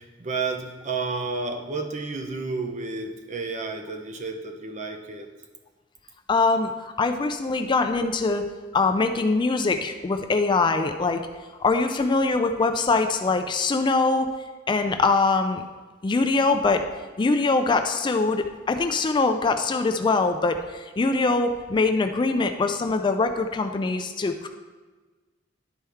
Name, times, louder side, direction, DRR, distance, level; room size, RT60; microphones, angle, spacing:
voice 1, 0.0-5.3, right 4 dB, 40° right, 4 dB, 0.7 m, -31 dB
voice 2, 6.3-6.7 7.0-8.5 8.7-11.2 11.6-14.3 14.7-15.6 16.0-16.8 17.2-24.5, left 3 dB, 25° left, 6 dB, 0.3 m, -23 dB
11.0 x 4.4 x 3.5 m, 1.3 s
head